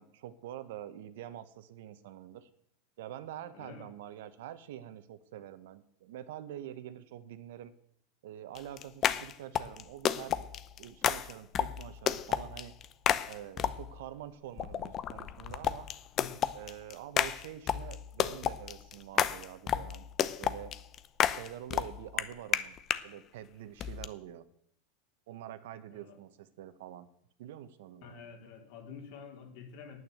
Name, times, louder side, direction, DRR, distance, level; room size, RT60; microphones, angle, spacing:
voice 1, 0.0-2.5 3.0-7.7 8.2-10.5 10.8-12.8 13.3-15.9 16.5-20.1 20.4-20.7 21.3-22.8 23.0-24.4 25.3-27.1 27.4-28.3, right 11 dB, 75° right, 13 dB, 1.1 m, -46 dB
voice 2, 3.5-3.9 16.2-16.4 25.9-26.2 28.0-30.0, left 6 dB, 60° left, 2 dB, 3.6 m, -48 dB
sound 1, 8.5-14.0 14.6-23.0 23.8-24.1, left 10 dB, 35° left, 0.7 m, -32 dB
9.3 x 9.0 x 7.8 m, 0.67 s
supercardioid pair, 135°, 0 cm